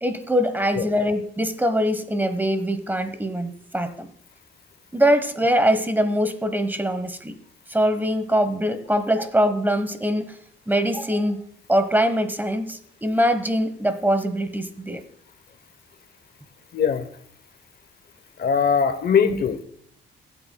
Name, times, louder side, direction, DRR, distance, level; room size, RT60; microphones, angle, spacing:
voice 1, 0.0-4.1 4.9-7.4 7.7-10.4 10.7-11.4 11.7-15.0 19.2-19.4, equal, 10° right, 10 dB, 1.0 m, -23 dB
voice 2, 16.7-17.1 18.4-19.6, left 7 dB, 50° left, 11 dB, 0.9 m, -21 dB
18.0 x 8.3 x 2.2 m, 0.67 s
cardioid pair, 90°, 20 cm